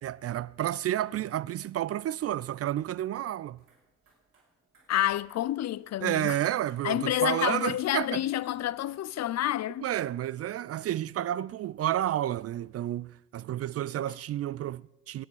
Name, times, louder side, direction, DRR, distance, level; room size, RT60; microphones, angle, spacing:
voice 1, 0.0-3.6 6.0-8.2 9.8-15.2, right 12 dB, 40° right, 0.4 m, -31 dB
sound 1, 3.5-9.5, right 3 dB, 70° right, 6.0 m, -64 dB
voice 2, 4.9-6.4 6.8-9.9, left 13 dB, 45° left, 0.5 m, -29 dB
23.5 x 9.6 x 5.6 m
hypercardioid pair, 45°, 37 cm